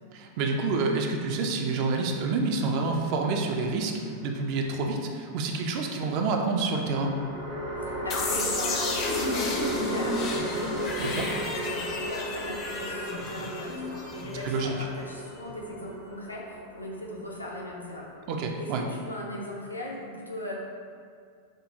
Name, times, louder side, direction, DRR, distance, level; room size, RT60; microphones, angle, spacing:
voice 1, 0.1-7.1 11.0-11.3 14.4-14.7 18.3-18.8, right 3 dB, 45° right, 2 dB, 0.4 m, -28 dB
sound 1, 3.7-4.6 6.8-18.2, equal, 65° right, 1.2 m, -35 dB
voice 2, 7.9-18.1 18.6-20.5, left 1 dB, 85° left, -3 dB, 0.5 m, -38 dB
sound 2, 8.1-14.9, left 3 dB, 35° left, 0.5 m, -33 dB
4.9 x 2.3 x 2.6 m, 2.2 s
figure-of-eight pair, 90°, 0 cm